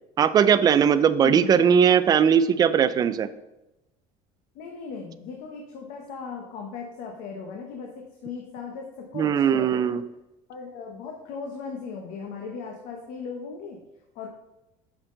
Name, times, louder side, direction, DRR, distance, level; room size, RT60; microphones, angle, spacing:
voice 1, 0.2-3.3 9.2-10.0, right 8 dB, 30° right, 13 dB, 0.4 m, -19 dB
voice 2, 1.2-1.6 4.5-9.8 10.5-13.8 14.1-14.3, left 5 dB, 70° left, 2 dB, 1.1 m, -37 dB
8.0 x 5.9 x 3.9 m, 0.95 s
cardioid pair, 155°, 14 cm